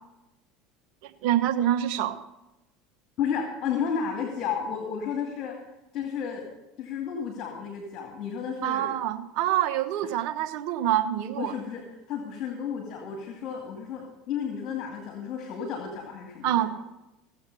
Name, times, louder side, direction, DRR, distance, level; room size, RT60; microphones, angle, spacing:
voice 1, 1.0-2.2 8.6-11.6 16.4-16.7, right 11 dB, 65° right, 8 dB, 1.1 m, -26 dB
voice 2, 3.2-5.6 5.9-6.5 6.8-8.9 10.0-10.1 11.3-11.8 12.1-16.7, left 7 dB, 50° left, 1 dB, 2.4 m, -32 dB
16.0 x 7.9 x 5.5 m, 0.97 s
hypercardioid pair, 85°, 0 cm